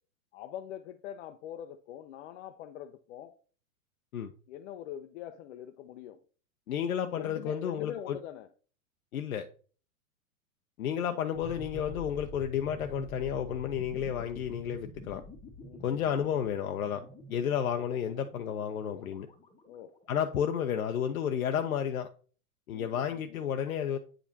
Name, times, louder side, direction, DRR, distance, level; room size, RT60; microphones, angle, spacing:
voice 1, 0.3-3.3 4.5-6.2 7.2-8.5 15.6-16.0 19.7-19.9 22.7-23.4, left 10 dB, 55° left, 0.6 m, -43 dB
voice 2, 6.7-8.2 9.1-9.5 10.8-15.2 15.8-17.0 17.3-19.3 20.1-22.1 22.7-24.0, left 9 dB, 90° left, 0.7 m, -31 dB
sound 1, 11.3-20.2, left 1 dB, 15° left, 1.2 m, -48 dB
8.7 x 5.1 x 2.7 m
hypercardioid pair, 120°, 41 cm